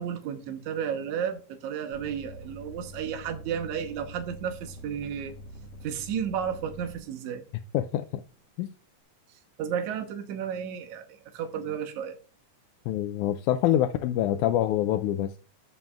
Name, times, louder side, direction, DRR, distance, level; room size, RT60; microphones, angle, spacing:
voice 1, 0.0-5.4 5.8-7.4 9.3-12.2, right 8 dB, 80° right, 2.4 m, -33 dB
sound 1, 1.9-7.0 7.7-8.4, equal, 60° left, 1.9 m, -45 dB
voice 2, 7.7-8.2 8.6-8.7 12.9-15.4, left 12 dB, 85° left, 2.0 m, -26 dB
16.5 x 5.5 x 2.4 m
omnidirectional pair, 3.4 m